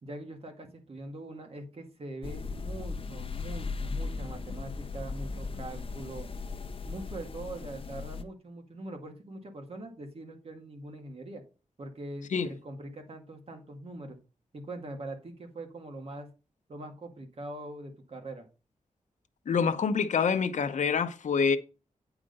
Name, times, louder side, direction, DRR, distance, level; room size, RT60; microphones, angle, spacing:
voice 1, 0.0-6.3 6.8-11.4 11.8-14.2 14.5-16.3 16.7-18.5, right 2 dB, 50° right, 2.0 m, -42 dB
sound 1, 2.2-8.2, left 4 dB, 45° left, 0.7 m, -37 dB
voice 2, 19.5-21.6, left 6 dB, 75° left, 0.8 m, -26 dB
8.8 x 4.9 x 5.3 m
wide cardioid pair, 125°, 13 cm